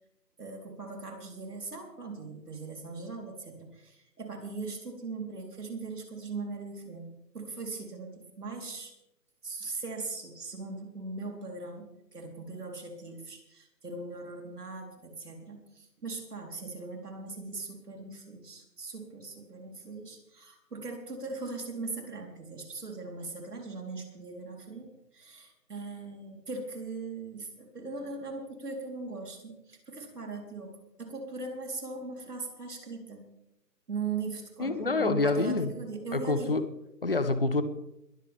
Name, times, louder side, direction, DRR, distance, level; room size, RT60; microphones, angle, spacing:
voice 1, 0.4-8.9 9.4-33.3 33.9-36.6, right 3 dB, 65° right, 1 dB, 4.2 m, -40 dB
voice 2, 34.6-35.7 36.1-36.6 37.0-37.6, left 3 dB, 35° left, 11 dB, 0.8 m, -27 dB
21.5 x 13.0 x 3.6 m, 0.84 s
hypercardioid pair, 175°, 50 cm